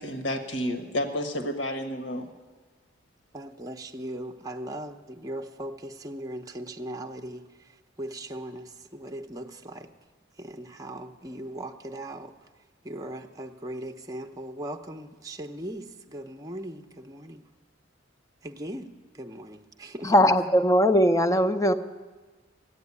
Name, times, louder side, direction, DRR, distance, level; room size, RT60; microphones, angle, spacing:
voice 1, 0.0-2.3, left 1 dB, 65° left, 6 dB, 1.4 m, -30 dB
voice 2, 3.3-7.7 8.0-9.9 10.4-12.3 12.8-17.4 18.4-20.3, right 1 dB, 20° right, 4 dB, 0.7 m, -39 dB
voice 3, 20.0-21.7, equal, 15° left, 9 dB, 0.6 m, -20 dB
15.0 x 9.0 x 9.7 m, 1.3 s
head